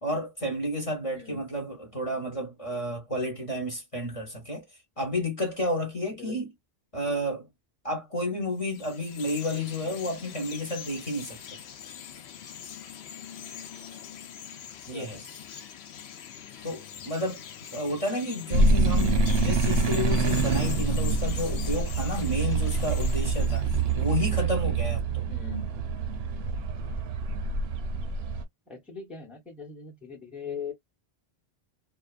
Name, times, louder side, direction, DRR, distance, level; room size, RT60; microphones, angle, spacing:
voice 1, 0.0-4.6 5.0-6.5 6.9-7.5 7.8-11.6 14.9-15.3 16.6-17.4 17.7-23.7 23.9-25.3, left 1 dB, 35° left, 0.9 m, -31 dB
voice 2, 6.1-6.4 14.9-15.3 25.3-25.7 28.7-30.7, left 6 dB, ahead, 0.8 m, -40 dB
Chirp tweet, 8.5-24.1, left 9 dB, 85° left, 0.9 m, -43 dB
sound 1, 18.5-28.4, right 3 dB, 75° right, 0.8 m, -26 dB
2.6 x 2.3 x 2.4 m
omnidirectional pair, 1.0 m